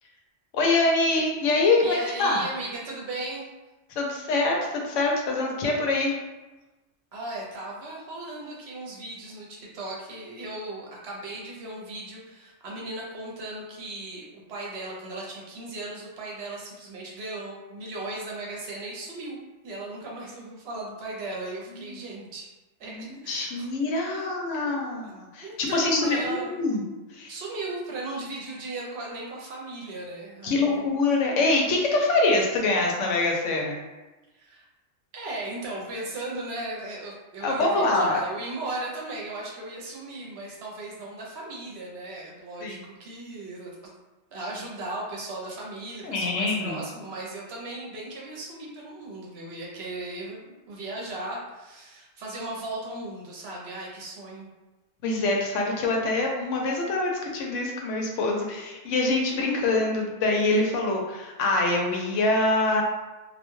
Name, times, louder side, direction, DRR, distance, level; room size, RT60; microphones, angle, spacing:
voice 1, 0.5-2.4 4.0-6.2 21.8-22.0 22.9-26.8 27.1-27.3 30.4-33.8 37.4-38.2 42.6-42.8 46.0-46.8 55.0-62.8, left 2 dB, 80° left, 0 dB, 0.9 m, -25 dB
voice 2, 1.8-3.5 7.1-19.4 19.6-22.5 22.8-23.7 23.9-24.3 25.0-25.1 25.4-26.7 27.3-31.0 34.3-34.7 35.1-43.8 44.3-54.5, right 2 dB, 65° right, -3 dB, 0.8 m, -37 dB
2.4 x 2.2 x 3.0 m, 1.1 s
omnidirectional pair, 1.3 m